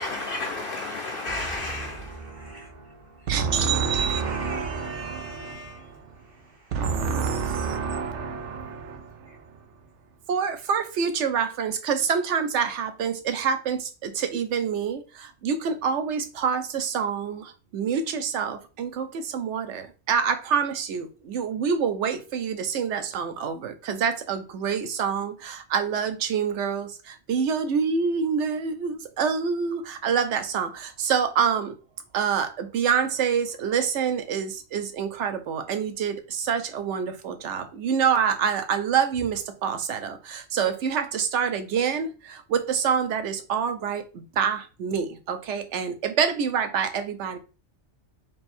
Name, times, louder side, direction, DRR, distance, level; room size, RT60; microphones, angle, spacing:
voice 1, 0.0-2.2 9.3-9.4, left 2 dB, 60° left, 0.6 m, -32 dB
voice 2, 1.3-8.0, right 2 dB, 45° right, 0.7 m, -42 dB
voice 3, 3.3-5.6 6.7-9.5 10.3-31.7 32.1-47.4, right 6 dB, 75° right, 0.9 m, -27 dB
3.4 x 2.6 x 4.2 m
omnidirectional pair, 1.2 m